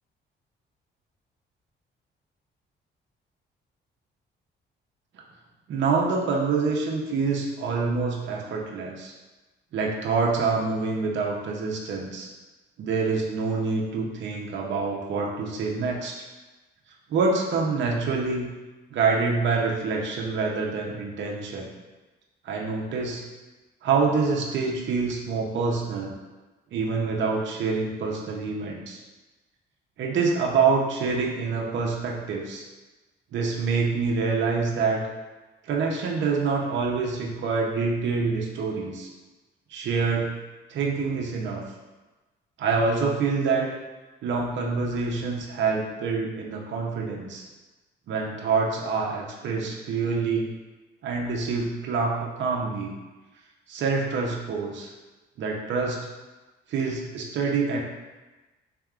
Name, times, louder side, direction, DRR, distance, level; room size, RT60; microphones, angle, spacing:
voice 1, 5.7-9.1 9.7-12.3 12.8-16.1 17.1-18.5 18.9-21.7 22.4-23.2 23.8-26.1 26.7-29.0 30.0-32.6 33.3-35.0 35.6-39.1 39.7-40.3 40.7-41.6 42.6-43.7 44.2-47.4 48.1-50.5 51.0-52.9 53.7-54.9 55.4-56.0 56.7-57.8, right 4 dB, 65° right, -1 dB, 0.7 m, -26 dB
3.6 x 3.4 x 2.4 m, 1.2 s
cardioid pair, 90°, 20 cm